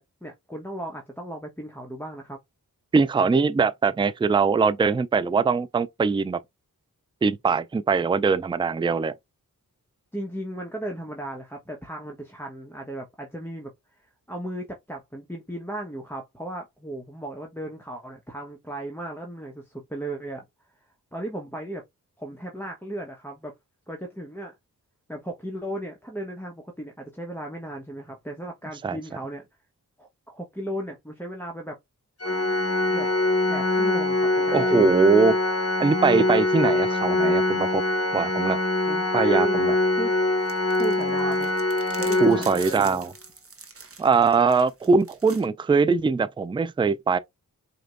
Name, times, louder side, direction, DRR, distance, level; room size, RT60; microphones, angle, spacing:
voice 1, 0.0-2.4 10.1-14.0 14.3-20.4 21.1-21.8 22.2-23.5 23.9-24.5 25.1-29.5 30.0-31.8 32.9-33.1 33.5-34.9 38.9-39.7 40.0-40.1 40.8-41.5 42.0-43.0, right 1 dB, 5° left, 1.1 m, -35 dB
voice 2, 2.9-6.4 7.2-9.1 28.8-29.0 34.5-35.4 35.8-37.8 38.1-38.6 39.1-39.8 42.2-43.1 44.0-47.2, right 5 dB, 15° right, 0.4 m, -22 dB
Organ, 32.2-43.0, left 2 dB, 40° left, 1.3 m, -24 dB
sound 1, 40.5-45.5, right 4 dB, 40° right, 1.3 m, -43 dB
5.0 x 2.9 x 2.5 m
cardioid pair, 50°, 36 cm